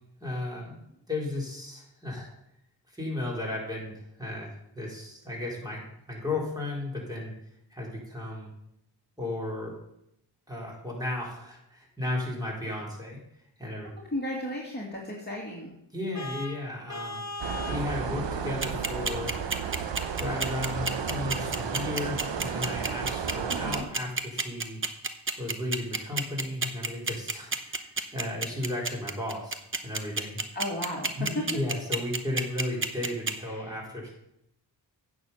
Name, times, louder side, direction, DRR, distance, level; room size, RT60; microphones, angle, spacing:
voice 1, 0.2-2.3 2.9-7.3 7.7-8.5 9.2-9.7 10.5-13.2 13.6-13.9 15.9-17.2 17.7-19.4 20.2-24.8 25.4-27.8 28.1-29.6 29.8-30.4 31.2-34.1, left 2 dB, 10° right, -4 dB, 4.4 m, -34 dB
voice 2, 14.1-15.7 23.5-23.9 30.5-31.4 33.4-34.1, left 1 dB, 20° left, -4 dB, 2.3 m, -35 dB
Vehicle horn car horn honking, 16.1-17.9, left 2 dB, 40° left, 1.0 m, -38 dB
sound 1, 17.4-23.8, right 6 dB, 75° right, 0.9 m, -33 dB
sound 2, 18.6-33.3, right 4 dB, 30° right, 0.9 m, -29 dB
9.1 x 6.4 x 5.6 m, 0.79 s
cardioid pair, 45°, 44 cm